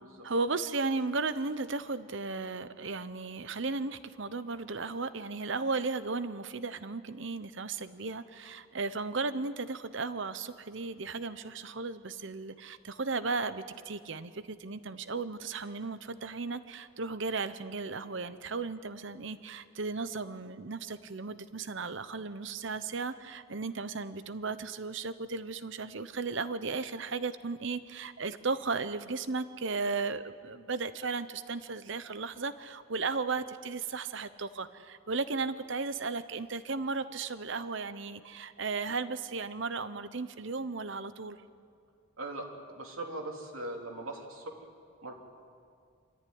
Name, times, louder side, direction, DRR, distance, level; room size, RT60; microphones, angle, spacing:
voice 1, 0.2-41.4, right 4 dB, 60° right, 13 dB, 0.9 m, -35 dB
voice 2, 42.2-44.6 45.0-45.1, right 2 dB, 75° right, 1 dB, 3.0 m, -40 dB
26.5 x 14.0 x 9.6 m, 2.3 s
head